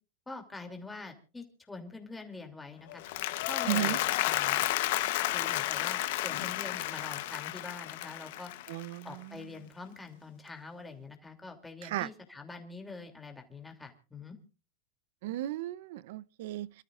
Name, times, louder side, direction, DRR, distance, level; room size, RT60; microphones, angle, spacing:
voice 1, 0.3-3.0 3.4-4.6 5.3-8.5 9.0-14.4, left 3 dB, 10° left, 2.9 m, -45 dB
Applause, 2.9-9.2, left 16 dB, 70° left, 1.0 m, -32 dB
voice 2, 3.7-4.0 8.7-9.1 11.8-12.1 15.2-16.7, right 14 dB, 70° right, 0.7 m, -34 dB
28.5 x 13.0 x 2.5 m
supercardioid pair, 140°, 0 cm